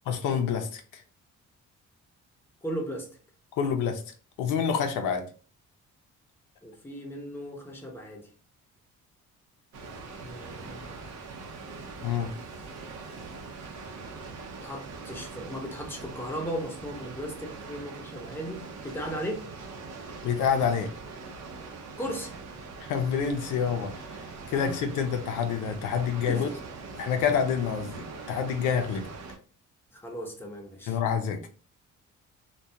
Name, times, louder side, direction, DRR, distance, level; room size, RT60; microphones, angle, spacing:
voice 1, 0.1-1.0 3.6-4.0 4.4-5.3 12.0-12.3 20.2-20.9 22.8-23.9 24.5-26.5 26.9-29.1 30.9-31.5, left 7 dB, 90° left, 0.5 m, -27 dB
voice 2, 2.6-3.1 6.6-8.3 10.2-11.0 14.6-19.4 22.0-22.3 24.7-24.8 26.3-26.5 29.9-31.0, equal, 5° left, 0.8 m, -36 dB
Water, 9.7-29.4, right 4 dB, 60° right, 0.7 m, -42 dB
2.3 x 2.2 x 2.7 m
cardioid pair, 90°, 30 cm